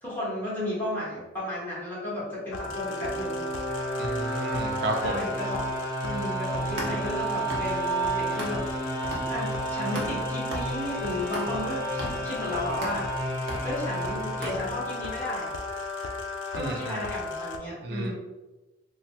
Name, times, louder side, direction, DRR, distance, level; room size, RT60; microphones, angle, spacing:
voice 1, 0.0-3.5 5.0-5.6 6.0-8.9 9.3-13.3 13.6-15.5 16.5-18.1, left 1 dB, 10° left, -9 dB, 1.1 m, -33 dB
sound 1, 2.2-15.2, right 3 dB, 40° right, 1.0 m, -33 dB
sound 2, 2.5-17.6, left 3 dB, 80° left, 0.4 m, -35 dB
voice 2, 4.0-5.2 16.5-16.8 17.8-18.1, right 1 dB, 55° right, 3 dB, 0.4 m, -31 dB
sound 3, 6.5-8.8 9.1-15.0, right 1 dB, 75° right, 0.8 m, -39 dB
3.1 x 2.1 x 2.7 m, 1.1 s
head